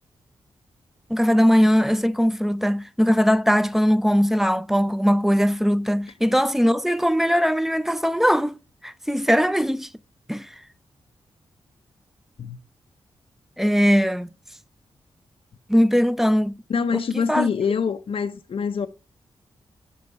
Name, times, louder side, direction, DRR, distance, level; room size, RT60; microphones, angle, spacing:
voice 1, 1.1-8.5 8.8-9.9 10.3-10.5 13.6-14.3 15.7-16.5 16.9-17.0 17.3-17.5, equal, 5° right, 0.5 m, -20 dB
voice 2, 16.7-18.9, left 6 dB, 55° left, 0.5 m, -24 dB
6.9 x 4.6 x 4.1 m
supercardioid pair, 40°, 11 cm